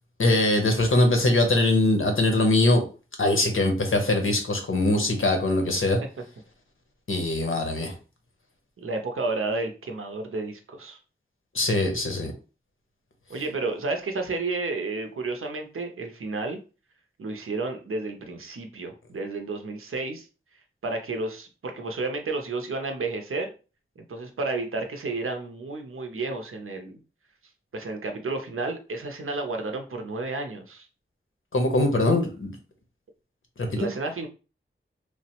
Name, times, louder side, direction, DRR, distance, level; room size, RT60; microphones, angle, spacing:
voice 1, 0.2-2.8 3.2-6.0 7.1-7.9 11.5-12.3 31.5-32.5 33.6-33.9, left 2 dB, 75° left, 4 dB, 0.7 m, -22 dB
voice 2, 8.8-11.0 13.3-16.6 17.2-20.3 20.8-23.5 24.0-27.0 27.7-30.9 33.7-34.3, right 3 dB, 80° right, 5 dB, 0.6 m, -31 dB
3.2 x 2.0 x 2.8 m, 0.34 s
wide cardioid pair, 60°, 21 cm